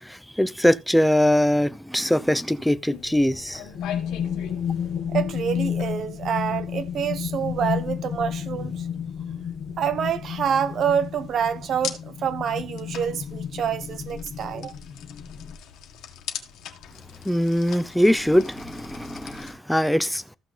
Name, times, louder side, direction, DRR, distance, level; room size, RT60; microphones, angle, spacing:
voice 1, 0.0-3.6 17.2-20.4, equal, 5° left, 0.7 m, -22 dB
Thunder, 2.7-18.2, right 2 dB, 90° right, 5.3 m, -51 dB
sound 1, 2.9-19.5, left 10 dB, 90° left, 1.5 m, -43 dB
sound 2, 3.7-15.6, left 8 dB, 60° left, 1.2 m, -31 dB
voice 2, 5.1-8.8 9.8-14.7, right 8 dB, 65° right, 1.1 m, -27 dB
14.0 x 6.0 x 3.4 m
cardioid pair, 90°, 0 cm